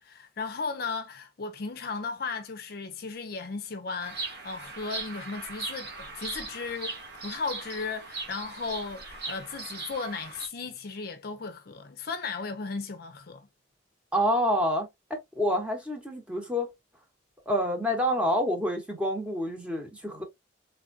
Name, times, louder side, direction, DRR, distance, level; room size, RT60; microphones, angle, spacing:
voice 1, 0.0-13.5, left 4 dB, 50° left, 0.5 m, -36 dB
Bird vocalization bird call bird song, 4.0-10.5, right 3 dB, 55° right, 1.2 m, -39 dB
voice 2, 14.1-16.7 17.5-20.2, equal, 5° right, 1.0 m, -28 dB
3.6 x 3.4 x 2.6 m
head